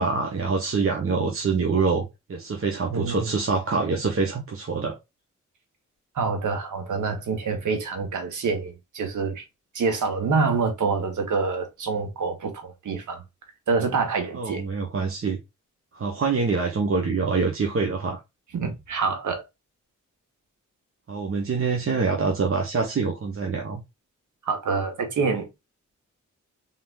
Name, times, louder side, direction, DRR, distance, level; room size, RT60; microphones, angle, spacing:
voice 1, 0.0-5.0 14.3-15.4 15.9-18.2 21.1-23.8, right 4 dB, 45° right, 1.1 m, -25 dB
voice 2, 2.9-3.3 6.1-9.4 9.7-13.2 13.7-14.6 18.5-19.4 24.4-25.5, right 4 dB, 85° right, 1.4 m, -26 dB
3.7 x 3.7 x 2.5 m
cardioid pair, 65°, 29 cm